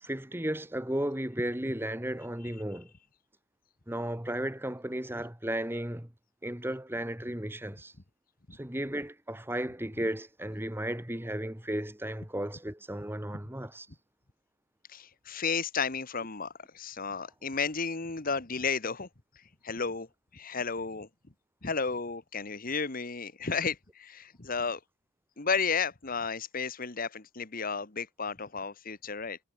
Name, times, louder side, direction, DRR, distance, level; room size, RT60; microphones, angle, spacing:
voice 1, 0.0-2.9 3.9-6.1 6.4-7.9 8.5-13.9, right 1 dB, 10° right, 1.7 m, -34 dB
voice 2, 14.9-19.1 19.6-20.1 20.3-21.1 21.6-24.8 25.4-29.4, left 5 dB, 40° left, 1.4 m, -33 dB
head